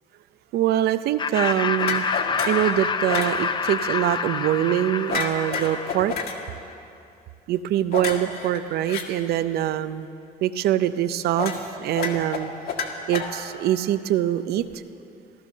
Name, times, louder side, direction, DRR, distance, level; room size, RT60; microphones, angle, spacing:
voice 1, 0.5-2.1 2.5-6.1 7.5-10.1 10.4-11.5 11.8-12.5 13.1-14.6, right 12 dB, 70° right, 13 dB, 0.6 m, -24 dB
Laughter, 1.2-6.5, left 5 dB, 30° left, 0.6 m, -27 dB
sound 1, 1.8-2.7 3.1-3.4 5.1-6.4 7.9-9.0 11.4-11.6 11.9-13.7, left 5 dB, 65° left, 1.8 m, -29 dB
15.5 x 13.0 x 6.5 m, 2.6 s
cardioid pair, 110°, 17 cm